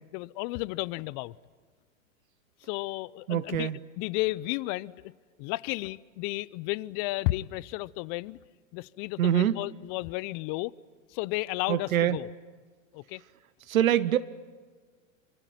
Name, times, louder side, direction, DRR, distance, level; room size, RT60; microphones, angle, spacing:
voice 1, 0.1-1.3 2.6-3.7 4.0-5.1 5.4-8.4 8.7-10.7 11.1-12.3 12.9-13.2, left 20 dB, 45° left, 22 dB, 0.8 m, -33 dB
voice 2, 3.3-3.8 9.2-9.6 11.7-12.2 13.7-14.2, right 11 dB, 80° right, 15 dB, 1.0 m, -24 dB
25.0 x 25.0 x 9.3 m, 1.5 s
hypercardioid pair, 105°, 41 cm